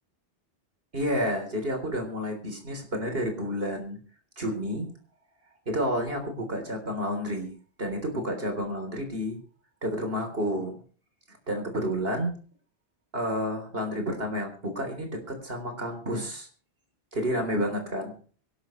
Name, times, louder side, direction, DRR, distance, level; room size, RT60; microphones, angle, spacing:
voice 1, 0.9-4.0 4.4-4.9 5.7-9.4 9.8-10.8 11.3-12.3 13.1-16.5 17.1-18.1, equal, 65° right, 4 dB, 3.9 m, -30 dB
24.0 x 12.0 x 3.2 m, 0.40 s
omnidirectional pair, 1.1 m